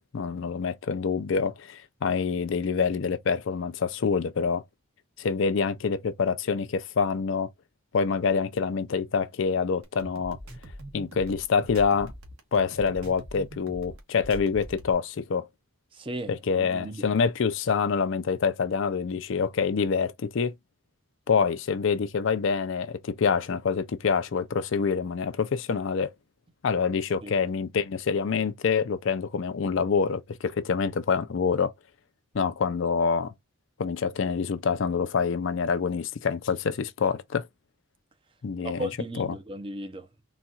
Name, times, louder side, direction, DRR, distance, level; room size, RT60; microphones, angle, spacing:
voice 1, 0.0-4.6 5.2-7.5 7.9-10.4 10.9-12.1 12.5-15.5 16.3-20.5 21.3-26.1 26.6-31.7 32.3-33.3 33.8-37.5 38.4-38.9 39.2-39.3, left 5 dB, 65° left, 0.4 m, -26 dB
sound 1, 9.8-14.9, equal, 80° right, 1.2 m, -42 dB
voice 2, 15.9-16.3 16.6-17.0 27.2-27.3 38.6-40.2, right 1 dB, 25° right, 0.5 m, -36 dB
4.0 x 2.3 x 2.4 m
head